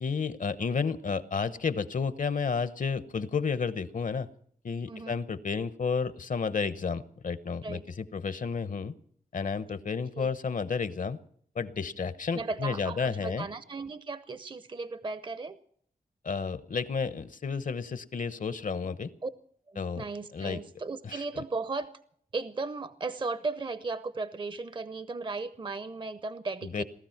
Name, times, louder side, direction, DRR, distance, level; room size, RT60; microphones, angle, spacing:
voice 1, 0.0-4.3 4.6-8.9 9.3-11.2 11.5-13.5 16.2-19.1 19.8-20.0 20.3-20.6 21.0-21.4 26.6-26.8, left 5 dB, 60° left, 14 dB, 0.9 m, -31 dB
voice 2, 4.9-5.2 7.6-7.9 10.1-10.3 12.3-15.6 19.2-19.3 19.7-21.9 22.3-26.8, right 3 dB, 30° right, 13 dB, 0.6 m, -36 dB
18.5 x 13.0 x 5.9 m, 0.62 s
wide cardioid pair, 85°, 15 cm